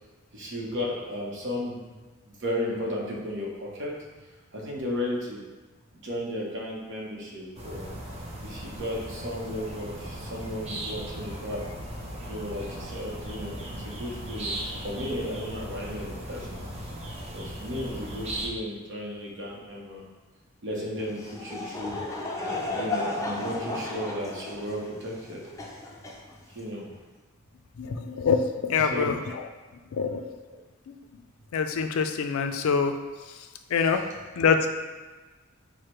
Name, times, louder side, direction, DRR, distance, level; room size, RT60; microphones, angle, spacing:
voice 1, 0.3-1.8 2.2-3.9 4.5-5.5 5.9-7.9 8.4-11.6 12.3-16.7 17.3-20.0 20.6-22.1 22.7-25.4 26.5-26.9 28.9-29.1 30.5-30.6, left 1 dB, 60° right, -4 dB, 0.9 m, -34 dB
sound 1, 7.6-18.5, right 1 dB, 30° right, 0.6 m, -37 dB
Laughter / Crowd, 21.0-26.7, left 2 dB, 15° left, 0.4 m, -34 dB
voice 2, 27.8-29.4 29.9-30.3 30.9-31.0 31.5-33.0 33.7-34.0 34.4-34.7, left 5 dB, 75° left, 7 dB, 0.4 m, -25 dB
4.8 x 2.1 x 4.4 m, 1.3 s
head